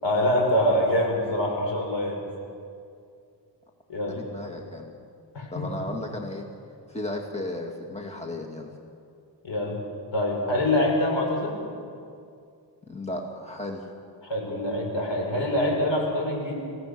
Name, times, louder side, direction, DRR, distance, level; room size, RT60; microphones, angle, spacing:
voice 1, 0.0-2.2 3.9-4.2 5.3-5.7 9.4-9.8 10.1-11.6 14.2-16.5, left 1 dB, 75° left, 0 dB, 5.8 m, -25 dB
voice 2, 4.1-4.9 5.5-6.5 6.9-8.7 12.9-13.8, left 1 dB, 15° left, 0 dB, 2.3 m, -34 dB
25.5 x 16.5 x 6.9 m, 2.4 s
wide cardioid pair, 70°, 45 cm